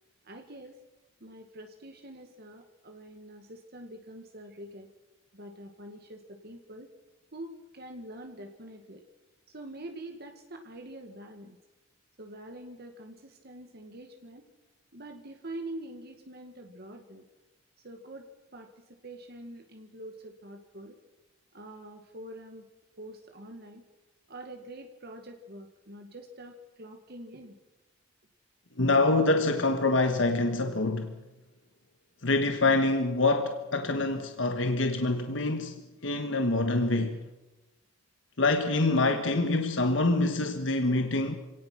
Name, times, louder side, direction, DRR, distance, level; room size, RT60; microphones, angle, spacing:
voice 1, 0.2-0.8 1.2-4.9 5.3-6.9 7.3-9.1 9.5-11.6 12.2-14.5 14.9-17.3 17.8-18.7 19.0-21.0 21.5-22.6 23.0-23.8 24.3-27.6, right 1 dB, 55° right, 1.9 m, -45 dB
voice 2, 28.8-31.1 32.2-37.2 38.4-41.3, left 2 dB, 70° left, 1.4 m, -26 dB
27.0 x 18.0 x 6.1 m
head